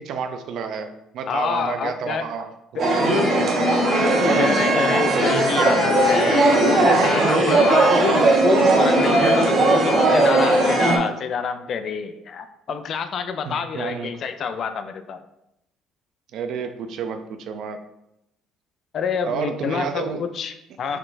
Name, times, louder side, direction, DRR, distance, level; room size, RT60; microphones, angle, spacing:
voice 1, 0.0-3.8 7.0-7.5 13.4-14.1 16.3-17.8 19.2-20.3 20.9-21.0, right 6 dB, 65° right, 7 dB, 0.4 m, -30 dB
voice 2, 1.3-2.3 2.7-2.8 4.4-15.2 18.9-21.0, left 6 dB, 55° left, 10 dB, 0.4 m, -27 dB
sound 1, 2.8-11.0, right 2 dB, 45° right, 1.0 m, -18 dB
4.4 x 3.9 x 2.6 m, 0.84 s
cardioid pair, 95°, 0 cm